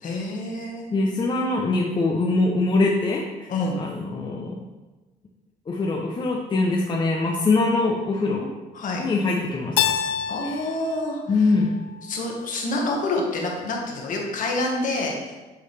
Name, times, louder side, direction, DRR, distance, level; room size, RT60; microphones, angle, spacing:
voice 1, 0.0-0.9 3.5-3.8 8.7-9.1 10.3-11.5 12.0-15.4, left 2 dB, 50° left, 0 dB, 1.4 m, -27 dB
voice 2, 0.9-3.5 3.7-4.5 5.7-8.5 9.0-9.8 10.4-10.6 11.3-11.7, left 3 dB, 25° left, -1 dB, 0.6 m, -23 dB
Keyboard (musical), 9.8-12.6, left 9 dB, 85° left, 0.5 m, -28 dB
8.3 x 3.9 x 3.2 m, 1.2 s
cardioid pair, 110°, 17 cm